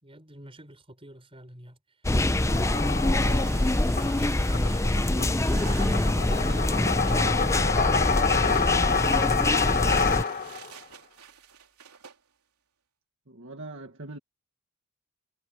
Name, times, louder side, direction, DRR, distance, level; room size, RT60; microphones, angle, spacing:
voice 1, 0.0-1.8 2.9-3.5 3.9-5.7 6.2-7.8, right 1 dB, 25° right, 5.6 m, -46 dB
sound 1, 2.0-10.2, left 1 dB, 15° left, 0.6 m, -24 dB
sound 2, 2.4-10.7, left 5 dB, 40° left, 1.4 m, -28 dB
sound 3, 3.2-12.2, right 8 dB, 90° right, 3.5 m, -48 dB
voice 2, 13.3-14.2, right 2 dB, 60° right, 1.9 m, -41 dB
head